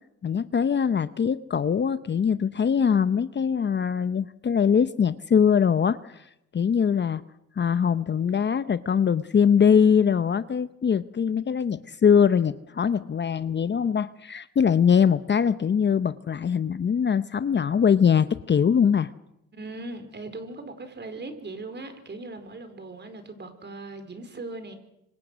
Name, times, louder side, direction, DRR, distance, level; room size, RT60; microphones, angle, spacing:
voice 1, 0.2-6.2 6.5-7.2 7.6-19.1, left 7 dB, 35° left, 14 dB, 0.8 m, -22 dB
voice 2, 19.5-24.8, right 2 dB, 35° right, 8 dB, 4.6 m, -39 dB
26.0 x 25.0 x 6.3 m, 0.83 s
cardioid pair, 90°, 30 cm